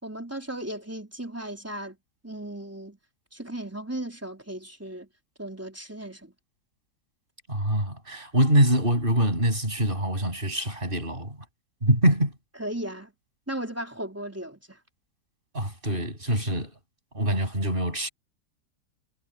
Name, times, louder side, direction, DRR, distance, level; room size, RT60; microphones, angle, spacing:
voice 1, 0.0-2.0 2.2-3.0 3.3-5.1 5.4-6.3 12.6-13.1 13.5-14.8, right 1 dB, 10° right, 3.9 m, -36 dB
voice 2, 7.5-11.4 11.8-12.3 15.5-16.7 17.1-18.1, right 1 dB, 30° right, 8.2 m, -24 dB
omnidirectional pair, 1.8 m